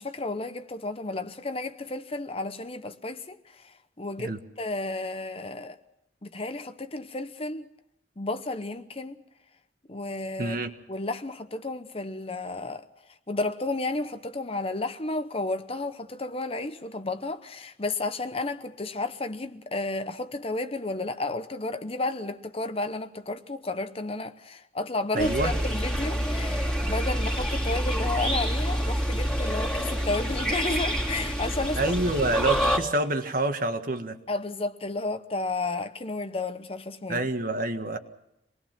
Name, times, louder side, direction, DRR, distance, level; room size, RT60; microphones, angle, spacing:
voice 1, 0.0-4.3 4.6-5.8 6.2-7.7 8.2-9.2 9.9-10.6 10.9-12.8 13.3-31.9 34.3-37.3, left 2 dB, 35° left, 0.9 m, -32 dB
voice 2, 10.4-10.7 25.1-25.6 31.8-34.2 37.1-38.0, right 2 dB, 50° right, 1.7 m, -27 dB
sound 1, 25.2-32.8, equal, 5° left, 2.8 m, -27 dB
26.0 x 20.0 x 6.1 m
head